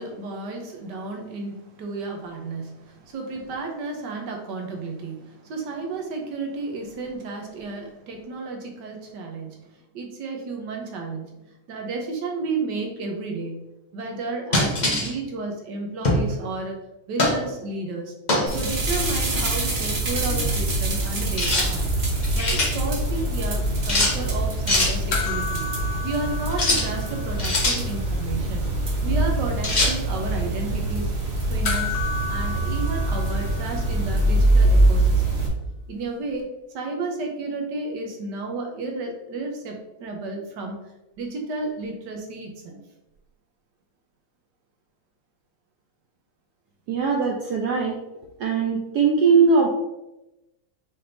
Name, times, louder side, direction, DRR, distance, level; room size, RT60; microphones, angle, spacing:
voice 1, 0.0-9.7 9.9-11.4 11.7-16.8 17.1-18.1 18.5-22.0 22.3-25.7 26.0-28.7 29.0-31.1 31.5-32.0 32.3-35.5 35.9-40.8 41.2-42.8, right 3 dB, 65° right, 2 dB, 1.3 m, -32 dB
sound 1, 14.5-15.1 16.0-16.3 17.2-17.4 18.3-18.5 21.4-21.7 22.1-22.7 23.9-24.2 24.7-24.9 26.5-26.9 27.4-27.8 29.6-29.9, left 2 dB, 40° left, 0.6 m, -22 dB
sound 2, 18.5-35.5, right 1 dB, 45° right, 0.9 m, -24 dB
sound 3, 25.1-27.8 28.0-28.1 31.6-34.2 36.4-36.5, left 3 dB, 85° left, 0.6 m, -32 dB
voice 2, 46.9-48.0 48.4-49.7, right 5 dB, 80° right, -1 dB, 0.9 m, -20 dB
5.9 x 3.5 x 2.6 m, 0.95 s
omnidirectional pair, 2.3 m